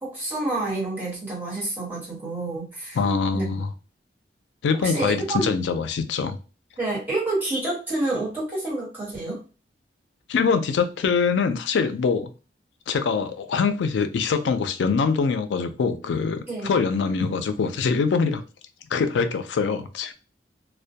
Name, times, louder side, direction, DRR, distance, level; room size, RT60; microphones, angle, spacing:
voice 1, 0.0-3.0 3.3-3.6 4.8-5.5 6.8-9.4 16.4-16.7, right 2 dB, 10° right, -7 dB, 1.2 m, -28 dB
voice 2, 3.0-3.7 4.6-6.4 10.3-12.3 12.9-18.4 18.9-20.1, left 5 dB, 85° left, 9 dB, 0.4 m, -24 dB
2.2 x 2.1 x 2.7 m, 0.34 s
head